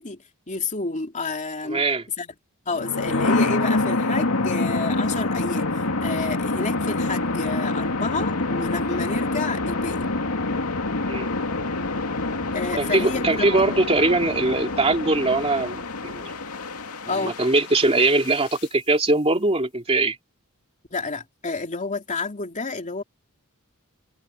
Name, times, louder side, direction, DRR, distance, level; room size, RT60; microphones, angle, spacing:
voice 1, 0.0-1.8 2.2-2.3 2.7-5.7 6.0-10.1 12.5-13.7 17.0-17.4 20.9-23.0, left 3 dB, 35° left, 2.9 m, -30 dB
voice 2, 1.6-2.0 11.0-11.3 12.7-16.3 17.1-20.2, right 2 dB, 25° right, 2.9 m, -21 dB
sound 1, 2.7-18.6, left 2 dB, 80° left, 2.5 m, -26 dB
head